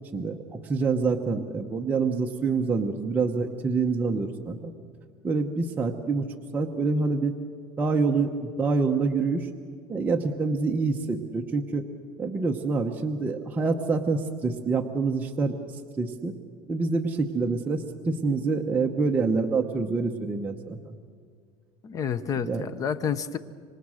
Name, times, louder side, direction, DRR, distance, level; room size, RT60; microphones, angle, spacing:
voice 1, 0.1-4.7 5.2-6.3 6.5-7.3 7.8-9.5 9.9-11.8 12.2-16.3 16.7-21.0 22.4-22.7, right 4 dB, 15° right, 1 dB, 1.0 m, -26 dB
voice 2, 21.8-23.4, left 7 dB, 30° left, 14 dB, 0.9 m, -29 dB
27.0 x 25.0 x 6.4 m, 2.1 s
cardioid pair, 160°, 11 cm